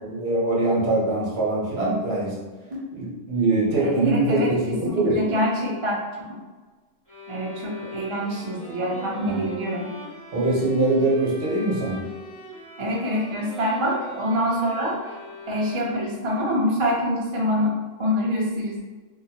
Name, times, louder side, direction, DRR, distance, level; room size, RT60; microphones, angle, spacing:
voice 1, 0.0-2.3 2.9-5.2 9.3-9.4 10.3-12.0, right 2 dB, 60° right, -5 dB, 1.1 m, -23 dB
voice 2, 3.8-6.0 7.3-9.9 12.8-15.0 15.5-18.8, equal, 40° right, -4 dB, 0.4 m, -25 dB
sound 1, 7.1-16.3, equal, 20° left, 0.8 m, -41 dB
2.7 x 2.3 x 2.8 m, 1.3 s
omnidirectional pair, 1.2 m